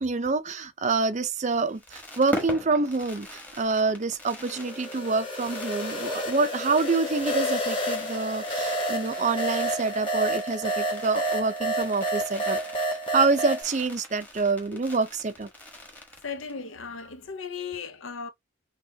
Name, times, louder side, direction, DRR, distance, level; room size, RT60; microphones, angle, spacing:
voice 1, 0.0-12.6 12.9-15.5, right 3 dB, 35° right, 0.5 m, -27 dB
Fireworks, 1.5-16.7 16.9-17.0 17.2-17.5, equal, 10° left, 1.2 m, -42 dB
sound 1, 4.6-13.6, right 1 dB, 25° left, 1.5 m, -30 dB
voice 2, 16.2-18.3, left 5 dB, 70° left, 0.8 m, -36 dB
6.2 x 2.4 x 2.8 m
head